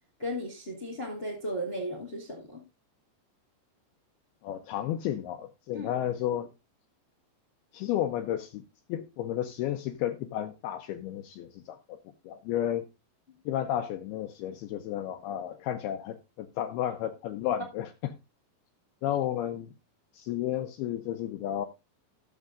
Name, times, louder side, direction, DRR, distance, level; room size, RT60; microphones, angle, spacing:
voice 1, 0.2-2.6 5.7-5.9, equal, 60° left, 0.6 m, -35 dB
voice 2, 4.4-6.5 7.7-8.6 8.9-12.0 12.2-12.8 13.5-17.9 19.0-19.7 20.1-21.7, left 11 dB, 80° left, 2.4 m, -32 dB
17.5 x 7.5 x 2.5 m
omnidirectional pair, 5.1 m